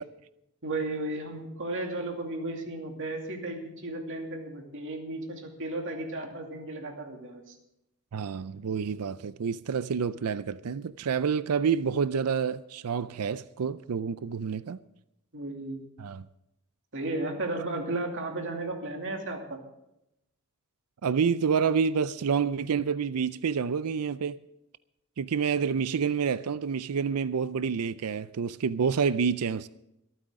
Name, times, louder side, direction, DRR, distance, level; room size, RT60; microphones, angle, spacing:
voice 1, 0.6-7.6 15.3-15.8 16.9-19.6, right 2 dB, 60° right, 2.6 m, -34 dB
voice 2, 8.1-14.8 16.0-16.3 21.0-24.4 25.2-29.7, right 6 dB, 80° right, 0.5 m, -28 dB
25.0 x 9.2 x 3.7 m
head